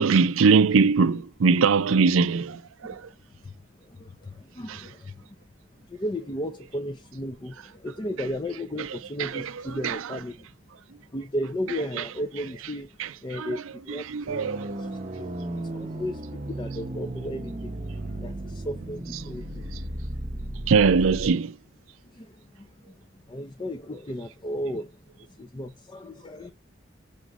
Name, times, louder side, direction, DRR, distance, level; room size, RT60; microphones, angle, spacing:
voice 1, 0.0-3.0 4.7-4.8 8.2-8.3 9.2-10.2 11.7-12.1 12.6-12.7 13.0-14.7 19.1-19.2 20.7-21.5, right 5 dB, 75° right, 0.5 m, -23 dB
voice 2, 3.8-5.3 5.9-10.5 11.1-12.9 13.2-19.9 22.1-22.9 23.3-25.0 25.4-26.5, equal, 25° left, 0.5 m, -35 dB
sound 1, 14.3-21.3, right 1 dB, 30° right, 0.7 m, -35 dB
6.3 x 3.0 x 2.3 m
head